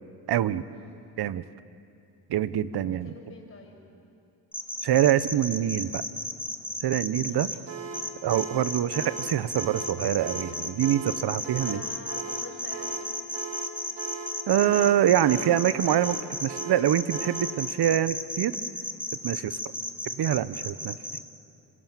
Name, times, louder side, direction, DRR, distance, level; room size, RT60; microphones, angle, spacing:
voice 1, 0.3-0.6 1.2-1.4 2.3-3.1 4.8-6.0 6.8-7.6 8.2-11.8 14.5-18.6 19.2-19.6 20.2-20.9, right 11 dB, 60° right, 16 dB, 1.0 m, -25 dB
voice 2, 2.9-3.8 7.2-7.4 11.6-13.0 19.3-19.5, left 3 dB, 30° left, 2 dB, 6.9 m, -46 dB
sound 1, 4.5-7.5 7.9-21.2, left 1 dB, 5° left, 2.0 m, -33 dB
sound 2, 7.7-17.6, right 4 dB, 80° right, 2.6 m, -39 dB
27.0 x 26.0 x 7.4 m, 2.6 s
cardioid pair, 95°, 43 cm